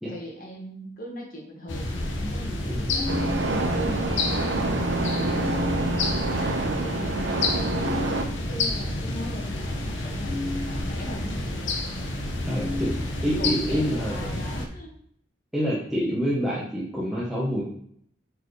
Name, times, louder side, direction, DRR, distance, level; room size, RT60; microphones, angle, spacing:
voice 1, 0.1-3.1 3.5-5.8 6.3-11.7 12.3-13.0 13.4-15.0, equal, 45° left, 0 dB, 1.7 m, -39 dB
sound 1, 1.7-14.7, left 2 dB, 85° left, 1.1 m, -29 dB
sound 2, 3.1-8.2, right 2 dB, 70° right, 0.9 m, -27 dB
voice 2, 12.5-12.9 13.2-14.4 15.5-17.6, equal, ahead, -8 dB, 1.1 m, -27 dB
8.4 x 4.6 x 3.3 m, 0.67 s
head